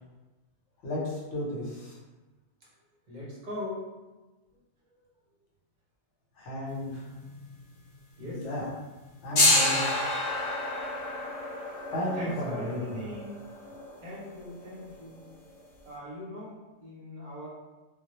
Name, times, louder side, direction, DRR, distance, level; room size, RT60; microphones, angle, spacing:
voice 1, 0.8-1.9 6.4-7.0 8.2-8.6 9.2-9.8 11.9-13.0, left 1 dB, 75° left, -5 dB, 1.0 m, -33 dB
voice 2, 3.1-3.9 8.2-8.5 11.7-11.9 12.1-13.5 14.0-15.2 15.8-17.5, left 1 dB, 50° right, -5 dB, 0.6 m, -40 dB
sound 1, 6.7-7.6 7.9-8.0 8.8-15.5, left 2 dB, 55° left, 0.8 m, -29 dB
2.1 x 2.0 x 2.9 m, 1.2 s
omnidirectional pair, 1.2 m